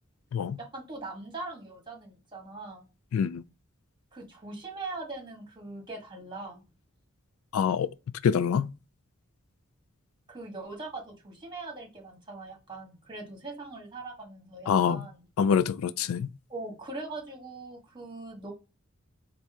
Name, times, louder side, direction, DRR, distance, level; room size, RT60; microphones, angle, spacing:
voice 1, 0.6-2.9 4.1-6.6 10.3-15.3 16.5-18.5, right 3 dB, 20° right, 1.4 m, -41 dB
voice 2, 3.1-3.4 7.5-7.9 8.2-8.7 14.7-15.0 15.4-16.3, left 7 dB, 80° left, 0.3 m, -25 dB
4.3 x 2.6 x 3.4 m
head